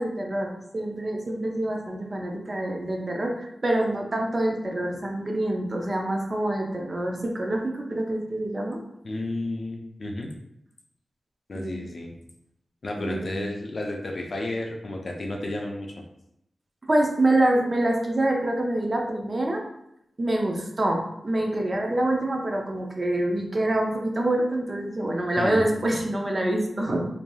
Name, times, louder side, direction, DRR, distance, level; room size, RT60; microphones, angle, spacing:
voice 1, 0.0-8.8 11.5-11.8 13.0-13.5 16.9-19.6 20.2-27.1, right 1 dB, 30° right, 1 dB, 0.4 m, -26 dB
voice 2, 9.0-10.3 11.5-12.1 12.8-16.0 25.4-25.7, left 2 dB, 50° left, 1 dB, 0.4 m, -32 dB
3.2 x 2.5 x 2.2 m, 0.80 s
wide cardioid pair, 120°, 0 cm